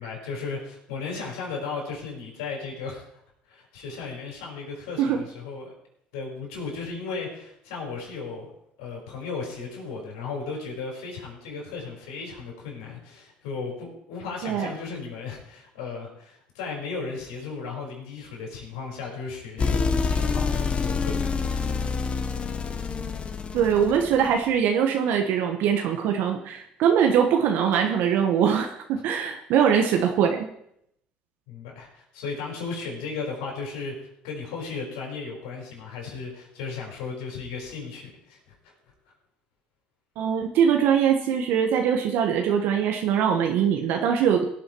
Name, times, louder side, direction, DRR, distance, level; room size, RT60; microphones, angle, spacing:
voice 1, 0.0-3.2 3.5-5.7 6.1-8.5 8.8-21.8 31.5-38.7, left 4 dB, 90° left, -1 dB, 5.2 m, -35 dB
sound 1, 19.6-24.4, left 5 dB, 30° left, 1.0 m, -27 dB
voice 2, 23.5-30.5 40.2-44.4, right 8 dB, 70° right, 3 dB, 1.3 m, -22 dB
17.5 x 7.7 x 4.7 m, 0.74 s
supercardioid pair, 85°, 4 cm